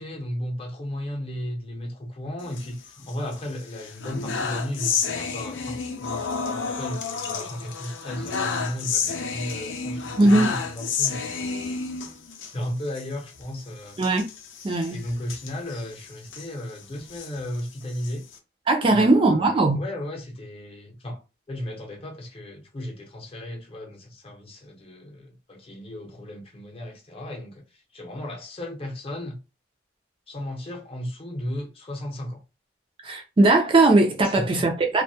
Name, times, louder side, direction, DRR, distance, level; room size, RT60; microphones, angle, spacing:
voice 1, 0.0-11.8 12.5-14.0 14.9-18.3 18.9-21.2 21.5-27.6 27.9-29.4 30.3-32.4 34.2-34.6, left 1 dB, 30° left, 0.7 m, -35 dB
sound 1, 2.4-3.4 3.7-12.5 12.9-13.0 13.3-13.4 14.0-16.5 17.0-18.4, left 5 dB, 90° left, 0.5 m, -31 dB
voice 2, 10.2-10.5 14.0-14.3 14.6-15.0 18.7-19.8 33.0-35.0, right 2 dB, 30° right, 0.4 m, -19 dB
2.2 x 2.1 x 2.7 m
head